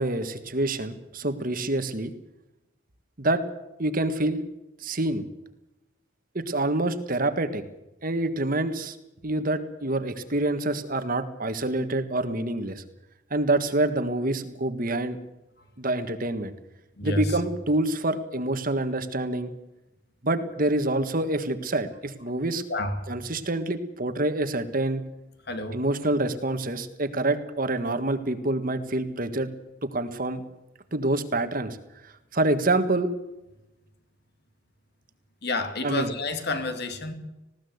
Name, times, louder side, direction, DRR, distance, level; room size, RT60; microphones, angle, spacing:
voice 1, 0.0-2.1 3.2-3.4 3.8-4.4 4.8-5.2 6.3-7.6 8.0-9.0 9.2-12.8 13.3-15.2 15.8-16.5 17.0-19.5 20.2-22.6 23.1-25.0 25.7-29.5 29.8-30.4 30.9-31.8 32.0-33.1 35.8-36.1, right 2 dB, 45° right, 10 dB, 1.7 m, -26 dB
voice 2, 22.7-23.1 25.5-25.8 35.4-37.1, left 2 dB, 55° left, 8 dB, 2.6 m, -29 dB
20.0 x 17.0 x 8.1 m, 0.95 s
head